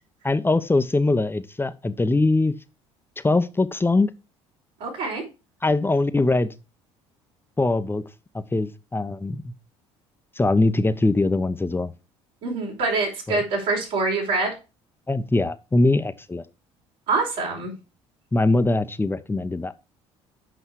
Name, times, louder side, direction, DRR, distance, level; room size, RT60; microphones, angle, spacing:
voice 1, 0.2-2.5 3.2-4.1 5.6-6.5 7.6-8.0 8.5-9.5 10.4-11.9 13.3-13.4 15.1-16.4 18.3-19.7, left 2 dB, 15° left, 0.9 m, -22 dB
voice 2, 4.8-5.2 12.4-14.5 17.1-17.7, right 3 dB, 70° right, 5.0 m, -25 dB
8.2 x 5.5 x 4.7 m
hypercardioid pair, 60°, 14 cm